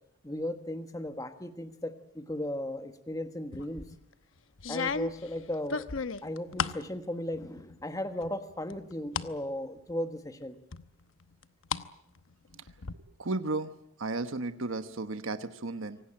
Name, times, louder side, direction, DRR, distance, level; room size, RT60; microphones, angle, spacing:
voice 1, 0.2-3.9 4.7-5.9 6.2-10.6, left 1 dB, 15° left, 8 dB, 1.3 m, -36 dB
sound 1, 3.5-4.0 4.6-6.9 7.3-7.9 8.2-9.3 9.8-9.9 10.7-11.9 12.2-12.9, left 5 dB, 80° left, 1.0 m, -35 dB
voice 2, 13.2-13.7 14.0-16.0, right 3 dB, 80° right, 10 dB, 1.1 m, -34 dB
25.5 x 18.0 x 8.8 m, 0.75 s
head